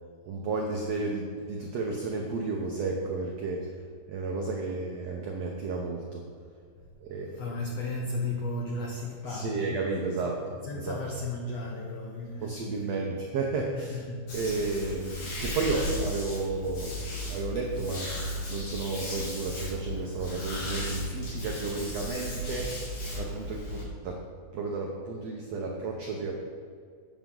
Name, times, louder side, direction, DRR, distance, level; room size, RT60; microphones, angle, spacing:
voice 1, 0.3-3.7 4.1-6.2 7.0-7.4 9.3-11.0 12.4-14.0 14.3-18.1 18.5-24.2 24.5-26.3, right 3 dB, 75° right, -1 dB, 1.5 m, -32 dB
voice 2, 7.3-9.8 10.2-10.3 10.6-13.1 13.7-14.3, left 2 dB, 80° left, 0 dB, 1.4 m, -35 dB
sound 1, 14.3-23.8, left 1 dB, 55° left, 4.5 m, -35 dB
12.0 x 8.8 x 3.9 m, 2.1 s
omnidirectional pair, 4.4 m